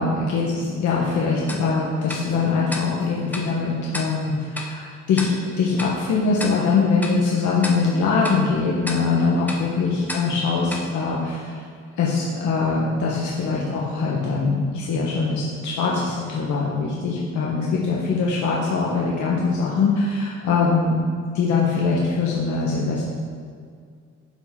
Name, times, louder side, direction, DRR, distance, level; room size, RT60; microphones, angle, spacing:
voice 1, 0.0-11.6 12.0-21.0 21.3-23.1, left 4 dB, 70° left, -4 dB, 1.2 m, -22 dB
Tick-tock, 1.5-11.9, left 1 dB, 5° left, 0.9 m, -36 dB
11.5 x 4.2 x 3.6 m, 2.1 s
cardioid pair, 90°, 30 cm